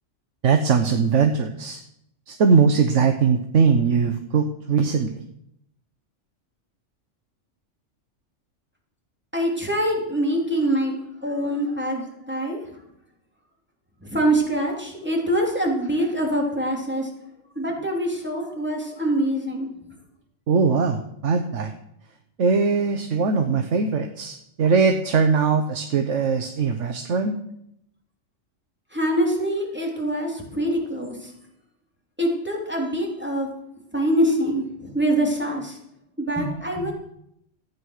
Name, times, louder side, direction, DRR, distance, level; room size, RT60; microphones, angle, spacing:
voice 1, 0.4-1.8 2.3-5.2 20.5-21.7 22.4-27.4, right 5 dB, 70° right, 6 dB, 1.3 m, -21 dB
voice 2, 9.3-12.0 12.3-12.6 14.0-17.1 17.5-19.7 28.9-31.3 32.2-33.5 33.9-35.8 36.2-36.9, right 1 dB, 10° right, -1 dB, 3.0 m, -24 dB
14.0 x 9.3 x 6.5 m, 0.76 s
omnidirectional pair, 1.3 m